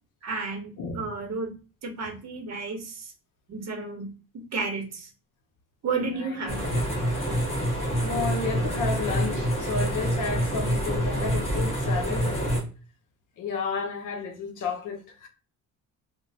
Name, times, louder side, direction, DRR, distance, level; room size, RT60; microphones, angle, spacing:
voice 1, 0.2-1.6 1.8-3.1 3.5-5.1 5.8-6.7, right 4 dB, 45° right, 0.8 m, -32 dB
voice 2, 0.8-1.1 6.2-6.3 8.0-12.6 13.4-15.3, left 5 dB, 55° left, 0.7 m, -32 dB
sound 1, 6.5-12.6, equal, 15° left, 1.2 m, -26 dB
2.9 x 2.1 x 2.6 m
cardioid pair, 140°, 38 cm